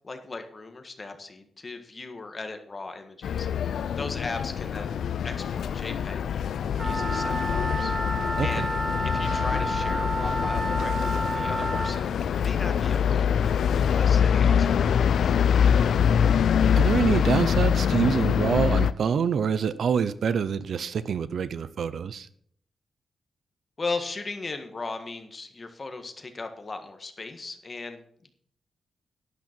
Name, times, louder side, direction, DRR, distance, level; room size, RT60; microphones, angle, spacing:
voice 1, 0.0-5.0 5.2-7.9 8.4-8.7 9.0-14.9 15.2-15.7 23.8-28.3, left 3 dB, 25° left, 6 dB, 1.6 m, -37 dB
sound 1, 3.2-18.9, left 8 dB, 80° left, 0.5 m, -24 dB
Wind instrument woodwind instrument, 6.7-12.0, right 1 dB, 10° right, 1.8 m, -30 dB
voice 2, 16.8-22.3, right 6 dB, 60° right, 15 dB, 0.7 m, -26 dB
11.5 x 11.5 x 4.5 m, 0.62 s
wide cardioid pair, 165°, 0 cm